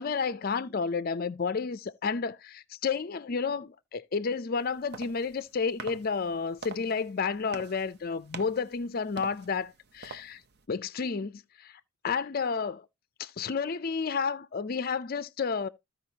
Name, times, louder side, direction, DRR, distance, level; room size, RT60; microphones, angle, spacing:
voice 1, 0.0-10.4 10.7-12.9 13.2-15.7, left 5 dB, 40° left, 0.4 m, -31 dB
sound 1, 4.6-10.7, right 4 dB, 45° right, 0.7 m, -46 dB
14.5 x 4.9 x 2.8 m
head